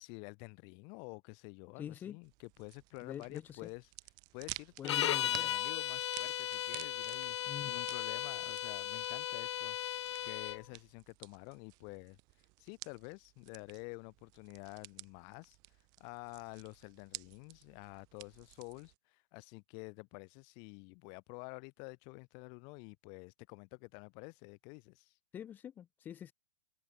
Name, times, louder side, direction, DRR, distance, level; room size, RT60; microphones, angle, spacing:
voice 1, 0.0-3.8 4.3-9.8 10.2-12.2 12.6-15.6 16.0-25.1, left 37 dB, 30° left, 4.2 m, -49 dB
voice 2, 1.8-2.2 3.0-3.7 4.8-5.5 7.4-7.8 25.3-26.3, left 9 dB, 10° left, 0.8 m, -44 dB
sound 1, 2.2-19.0, right 26 dB, 25° right, 1.4 m, -53 dB
sound 2, 4.8-10.6, left 12 dB, 65° left, 0.4 m, -36 dB
hypercardioid pair, 170°, 16 cm